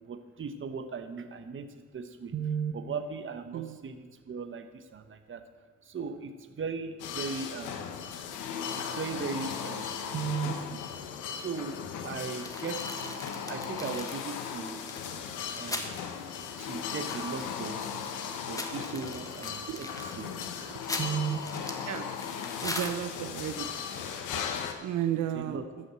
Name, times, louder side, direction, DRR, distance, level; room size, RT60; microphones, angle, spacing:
voice 1, 0.1-5.4 5.8-7.9 8.7-10.8 11.3-14.8 15.5-15.9 16.6-17.8 18.5-20.3 21.0-21.4 25.3-25.7, right 6 dB, 40° right, 8 dB, 1.1 m, -37 dB
sound 1, 7.0-24.7, left 7 dB, 90° left, 1.2 m, -37 dB
sound 2, 12.4-15.9 16.3-16.4 16.6-17.9 18.3-23.4, left 1 dB, 10° left, 1.5 m, -40 dB
voice 2, 22.6-23.7 24.8-25.6, right 11 dB, 80° right, 8 dB, 0.8 m, -32 dB
13.0 x 6.4 x 7.5 m, 1.4 s
cardioid pair, 90°, 30 cm